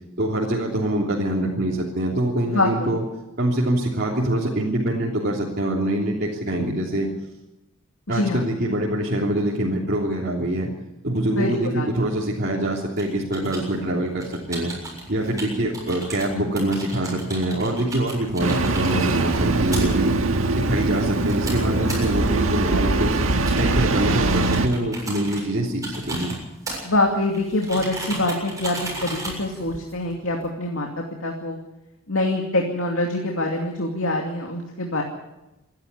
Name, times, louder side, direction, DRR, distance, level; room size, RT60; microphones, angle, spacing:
voice 1, 0.2-3.0 3.4-7.1 8.1-10.7 11.0-14.7 15.1-20.1 20.5-23.2 23.6-26.3, right 1 dB, 50° right, -5 dB, 3.2 m, -24 dB
voice 2, 2.5-2.9 8.1-8.5 11.4-12.0 26.8-31.6 32.1-35.0, left 2 dB, 70° left, 1 dB, 2.6 m, -25 dB
sound 1, 12.9-30.5, right 2 dB, 15° right, 7.2 m, -37 dB
Engine starting, 18.4-24.7, right 2 dB, 75° right, 1.7 m, -22 dB
27.0 x 11.5 x 8.4 m, 0.98 s
head